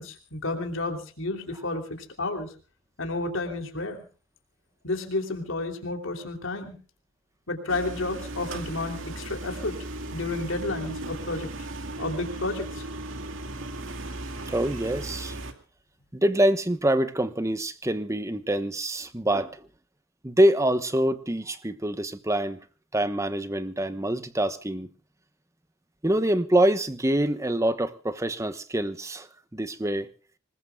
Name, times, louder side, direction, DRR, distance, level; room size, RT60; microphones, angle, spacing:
voice 1, 0.0-2.5 3.0-4.0 4.8-6.8 7.5-9.7 10.1-11.5 12.0-12.8, left 2 dB, 75° left, 3.1 m, -31 dB
sound 1, 7.7-15.5, right 2 dB, 75° right, 2.3 m, -36 dB
voice 2, 14.5-15.4 16.1-19.7 20.2-22.6 22.9-24.9 26.0-30.1, right 1 dB, 15° right, 1.1 m, -25 dB
26.5 x 20.0 x 2.3 m
head